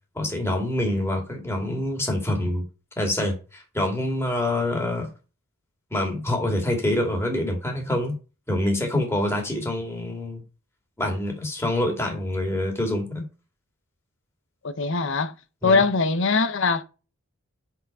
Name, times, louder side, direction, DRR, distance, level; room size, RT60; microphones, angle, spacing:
voice 1, 0.1-2.6 3.0-5.1 5.9-8.1 8.5-10.4 11.0-13.2 15.6-15.8, left 1 dB, 10° left, 2.4 m, -26 dB
voice 2, 14.6-15.3 15.6-16.8, left 4 dB, 60° left, 0.8 m, -21 dB
5.9 x 5.9 x 5.5 m
head